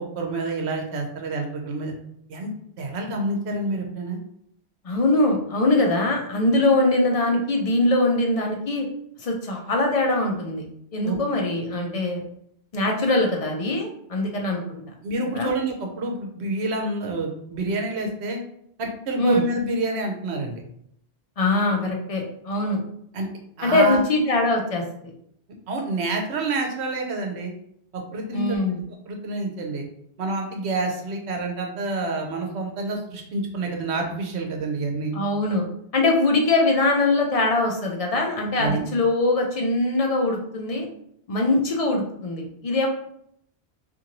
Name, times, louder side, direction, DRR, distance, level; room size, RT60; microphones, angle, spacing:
voice 1, 0.0-1.9 2.3-4.2 11.0-11.2 15.0-18.4 18.8-20.6 23.1-23.3 23.6-24.0 25.7-27.5 28.1-28.6 29.1-29.8 30.2-35.1 38.6-38.8, right 2 dB, 75° right, 2 dB, 0.9 m, -28 dB
voice 2, 4.8-8.9 9.2-10.7 10.9-12.2 12.7-14.6 15.3-15.5 19.2-19.4 21.4-22.8 23.6-24.8 28.3-28.8 35.1-35.6 35.9-40.9 41.3-42.9, left 2 dB, 50° left, 1 dB, 0.4 m, -22 dB
2.6 x 2.5 x 2.8 m, 0.70 s
omnidirectional pair, 1.1 m